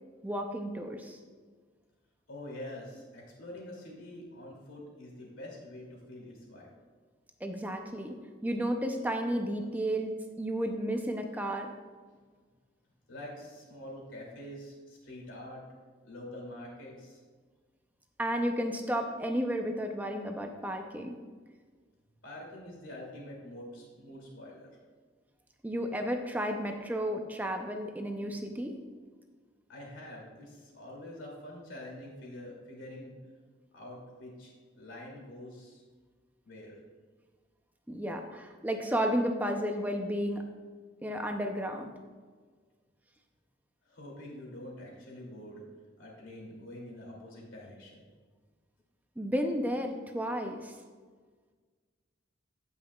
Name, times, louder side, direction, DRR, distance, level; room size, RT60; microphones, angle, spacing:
voice 1, 0.2-1.2 7.4-11.7 18.2-21.2 25.6-28.8 37.9-40.4 41.0-41.9 49.2-50.7, equal, 10° right, 4 dB, 0.5 m, -32 dB
voice 2, 2.3-6.7 12.1-12.2 13.1-15.6 16.0-17.2 22.2-24.7 29.7-33.2 33.7-35.8 36.4-36.8 43.9-45.6 46.0-48.0, left 1 dB, 85° left, -2 dB, 2.7 m, -46 dB
16.5 x 5.6 x 2.3 m, 1.5 s
head